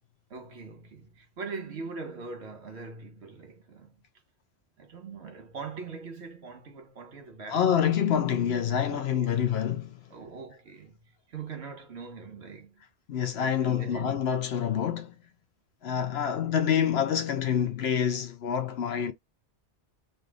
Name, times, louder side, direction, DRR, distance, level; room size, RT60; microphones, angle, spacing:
voice 1, 0.3-4.0 4.8-7.9 8.9-9.4 10.1-11.0 11.3-12.8 13.6-14.2, right 4 dB, 75° right, 1.3 m, -42 dB
voice 2, 7.5-10.0 13.1-15.1 15.8-19.1, left 8 dB, 70° left, 0.9 m, -27 dB
3.2 x 2.6 x 3.8 m
omnidirectional pair, 1.1 m